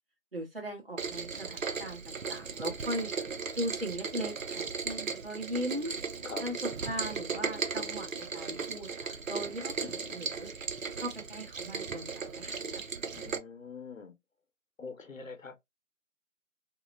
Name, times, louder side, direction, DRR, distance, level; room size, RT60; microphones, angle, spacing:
voice 1, 0.3-3.1 3.5-5.9 6.4-10.5 11.0-12.8, equal, 45° right, 1.2 m, -38 dB
Rain, 1.0-13.4, right 5 dB, 80° right, 0.7 m, -37 dB
voice 2, 9.8-10.2 13.2-14.1 14.8-15.6, left 4 dB, 75° left, 0.9 m, -44 dB
2.9 x 2.0 x 2.4 m
figure-of-eight pair, 180°, 39 cm